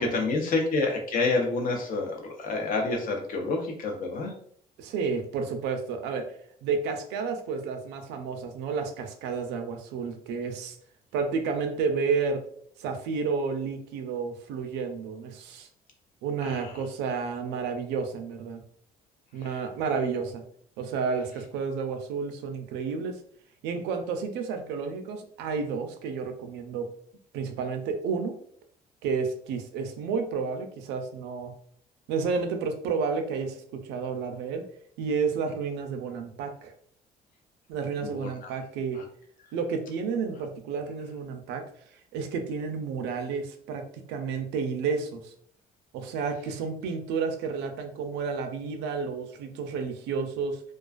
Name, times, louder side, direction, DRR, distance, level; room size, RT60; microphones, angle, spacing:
voice 1, 0.0-4.3 16.4-16.7 19.5-19.6 38.0-38.5 38.9-39.0, left 3 dB, 55° left, 2 dB, 0.7 m, -28 dB
voice 2, 4.8-6.3 6.6-10.8 11.1-12.4 12.8-15.7 16.2-18.6 19.3-20.4 20.8-23.2 23.6-26.9 27.3-28.4 29.0-31.5 32.1-34.6 35.0-36.7 37.7-39.0 39.5-41.7 42.1-45.3 45.9-50.6, right 5 dB, 90° right, 5 dB, 0.4 m, -31 dB
2.3 x 2.3 x 2.3 m, 0.62 s
cardioid pair, 110°, 17 cm